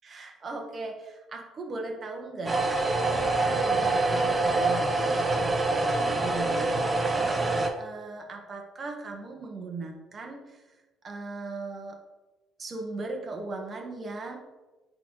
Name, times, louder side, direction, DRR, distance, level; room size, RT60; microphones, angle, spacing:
voice 1, 0.0-2.7 3.1-7.3 7.8-10.6 11.0-12.0 12.6-14.4, right 3 dB, 35° right, 2 dB, 1.3 m, -38 dB
sound 1, 2.5-7.7, right 2 dB, 20° right, 0.9 m, -25 dB
10.0 x 4.0 x 3.1 m, 1.2 s
cardioid pair, 110°, 0 cm